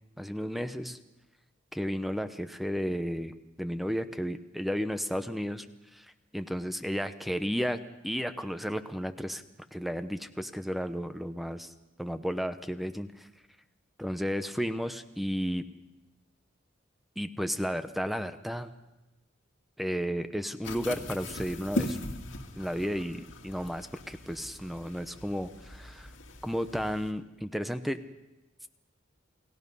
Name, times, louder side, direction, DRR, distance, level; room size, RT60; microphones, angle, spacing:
voice 1, 0.2-1.0 1.7-5.7 5.9-6.1 6.3-7.8 8.0-9.4 9.7-11.7 12.0-13.3 14.0-15.6 17.2-18.7 19.8-22.0 22.6-26.1 26.4-28.0, equal, ahead, 9 dB, 0.8 m, -33 dB
sound 1, 20.6-27.1, left 1 dB, 80° left, 2.2 m, -39 dB
30.0 x 18.5 x 5.5 m, 1.0 s
head